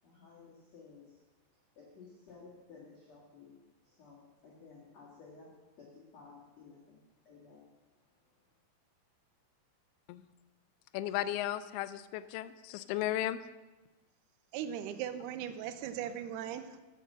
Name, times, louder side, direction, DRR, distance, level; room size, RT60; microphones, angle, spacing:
voice 1, 0.0-1.2 1.5-3.6 3.8-8.5, left 4 dB, 45° left, -7 dB, 2.9 m, -56 dB
voice 2, 10.9-13.4, left 13 dB, 80° left, 14 dB, 2.5 m, -35 dB
voice 3, 14.5-16.8, right 9 dB, 90° right, 10 dB, 2.7 m, -38 dB
10.0 x 7.0 x 7.4 m, 1.1 s
omnidirectional pair, 4.6 m